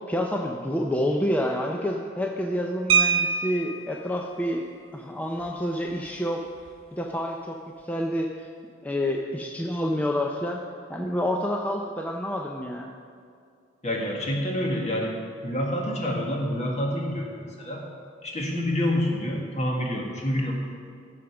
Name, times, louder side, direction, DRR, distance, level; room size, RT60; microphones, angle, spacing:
voice 1, 0.1-4.7 4.9-6.4 6.9-7.6 7.9-8.3 8.8-10.6 10.9-12.9, equal, 10° left, 0 dB, 0.5 m, -28 dB
sound 1, 2.9-4.0 5.4-5.5 5.9-6.1 6.5-6.7, right 6 dB, 75° right, 0.6 m, -24 dB
voice 2, 13.8-17.8 18.2-20.5, left 1 dB, 35° left, -1 dB, 1.7 m, -28 dB
15.0 x 5.0 x 5.9 m, 2.4 s
head